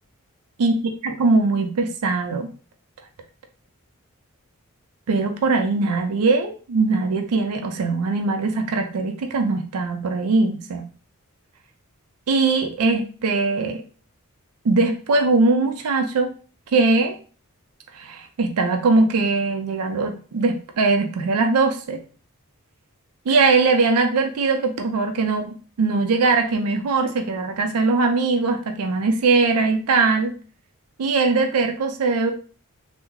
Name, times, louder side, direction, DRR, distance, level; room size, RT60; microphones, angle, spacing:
voice 1, 1.0-2.5 5.1-10.8 12.3-13.8 14.6-16.3 16.7-17.2 17.9-22.0 23.3-30.3 31.0-32.3, right 3 dB, 90° right, 5 dB, 0.4 m, -21 dB
3.6 x 2.0 x 3.0 m, 0.39 s
head